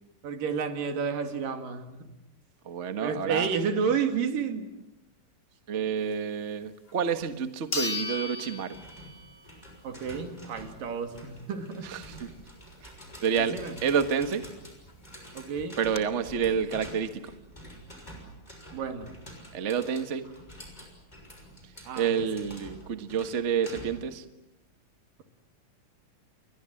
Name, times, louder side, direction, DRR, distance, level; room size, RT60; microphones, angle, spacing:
voice 1, 0.2-2.0 3.0-4.7 9.8-11.9 13.5-13.8 15.4-15.8 18.7-19.1 21.8-22.3, right 6 dB, 90° right, 6 dB, 4.0 m, -31 dB
voice 2, 2.6-3.5 5.7-8.8 11.8-12.3 13.2-13.6 13.8-14.4 15.8-17.3 19.5-20.3 21.9-24.2, right 7 dB, 55° right, 9 dB, 0.7 m, -29 dB
sound 1, 6.9-7.0 7.7-9.5 9.9-10.0 14.6-14.7 14.9-15.0 15.5-16.0, left 4 dB, 30° left, 1.2 m, -35 dB
sound 2, 8.7-24.2, equal, 10° left, 6.0 m, -48 dB
29.5 x 22.5 x 7.7 m, 0.92 s
omnidirectional pair, 3.8 m